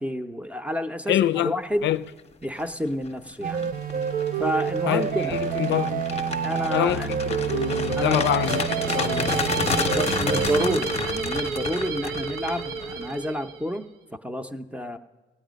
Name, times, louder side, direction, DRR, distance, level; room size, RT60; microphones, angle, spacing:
voice 1, 0.0-1.9 2.4-3.7 4.4-5.4 6.4-7.1 8.0-8.3 9.8-15.0, equal, 5° right, 0.6 m, -30 dB
voice 2, 1.1-1.5 1.8-2.0 4.9-5.2 5.6-6.1 6.7-9.4, left 12 dB, 65° left, 0.4 m, -25 dB
sound 1, 2.3-2.6 3.1-13.2, left 5 dB, 30° left, 0.7 m, -31 dB
sound 2, 3.4-10.8, right 7 dB, 45° right, 0.4 m, -28 dB
sound 3, 7.4-13.8, right 5 dB, 85° right, 0.7 m, -32 dB
17.5 x 8.7 x 5.1 m
cardioid pair, 90°, 20 cm